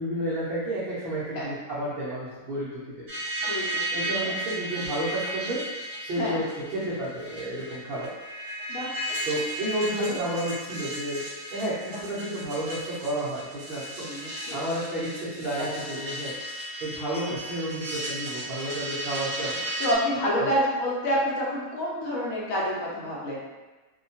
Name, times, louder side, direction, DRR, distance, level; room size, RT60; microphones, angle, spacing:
voice 1, 0.0-2.7 3.9-5.6 6.0-8.1 9.3-11.2 11.5-16.3 16.8-19.6 20.3-20.5, right 1 dB, 70° right, -9 dB, 0.5 m, -31 dB
sound 1, 3.1-20.0, right 1 dB, 40° right, 0.9 m, -34 dB
voice 2, 3.4-3.8 4.2-4.7 6.2-6.4 8.7-8.9 9.8-10.2 14.0-14.6 19.8-23.4, equal, 65° left, -5 dB, 1.0 m, -28 dB
2.7 x 2.1 x 2.7 m, 1.2 s
omnidirectional pair, 1.7 m